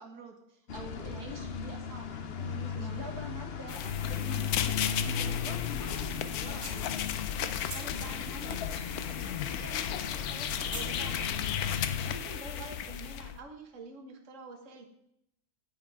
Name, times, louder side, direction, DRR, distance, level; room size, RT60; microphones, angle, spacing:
voice 1, 0.0-2.5 2.8-4.8 5.0-7.0, right 3 dB, 75° right, 2 dB, 1.9 m, -46 dB
sound 1, 0.7-12.2, left 7 dB, 50° left, 0.8 m, -37 dB
voice 2, 2.4-2.7 7.4-11.7 12.0-14.9, right 4 dB, 55° right, 2 dB, 1.6 m, -47 dB
sound 2, 3.7-13.4, left 10 dB, 75° left, 1.1 m, -35 dB
sound 3, 6.6-7.4 7.7-9.5 9.8-11.0, right 1 dB, 35° right, 3.0 m, -44 dB
9.5 x 9.1 x 3.5 m, 0.75 s
omnidirectional pair, 1.6 m